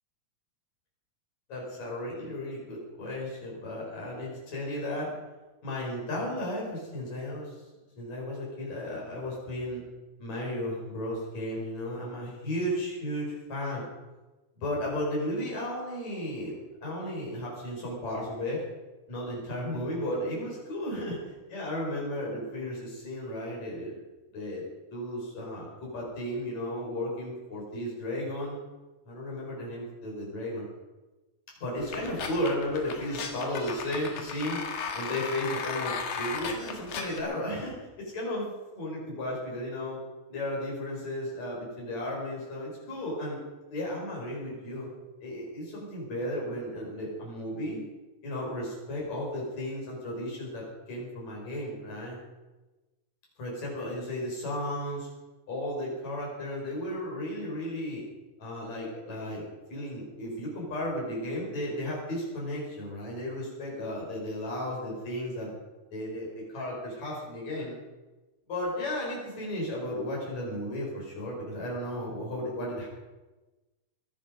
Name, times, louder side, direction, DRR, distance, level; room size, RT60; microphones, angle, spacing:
voice 1, 1.5-5.1 5.6-7.5 8.0-9.8 10.2-13.8 14.6-16.5 16.8-18.6 19.1-24.0 24.3-24.6 24.9-28.6 29.1-30.7 31.6-34.6 34.9-40.0 40.3-43.4 43.7-44.9 45.2-47.8 48.2-52.2 53.4-55.1 55.5-58.0 58.4-65.5 65.9-67.8 68.5-72.9, left 1 dB, 60° left, -3 dB, 6.7 m, -34 dB
sound 1, 31.8-37.2, left 5 dB, 80° left, 3.0 m, -36 dB
22.0 x 10.0 x 5.3 m, 1.1 s
omnidirectional pair, 3.5 m